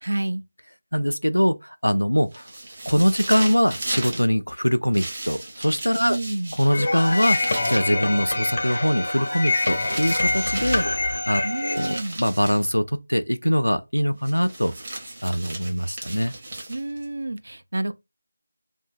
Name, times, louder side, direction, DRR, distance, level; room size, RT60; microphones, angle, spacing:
voice 1, 0.0-0.4 6.0-6.5 11.4-12.2 16.7-17.9, right 1 dB, 60° right, 0.3 m, -29 dB
voice 2, 0.9-2.5 2.9-6.2 6.5-7.4 7.7-14.7 15.2-16.3, equal, 90° left, 0.4 m, -23 dB
sound 1, 2.3-4.3 4.9-7.9 9.2-11.0 11.6-12.7 14.2-17.0, right 2 dB, 35° right, 0.8 m, -35 dB
sound 2, 6.7-11.8, left 3 dB, 40° left, 0.5 m, -26 dB
Bowed string instrument, 7.0-12.0, equal, 90° right, 0.7 m, -32 dB
2.6 x 2.1 x 2.5 m
figure-of-eight pair, 165°, 0 cm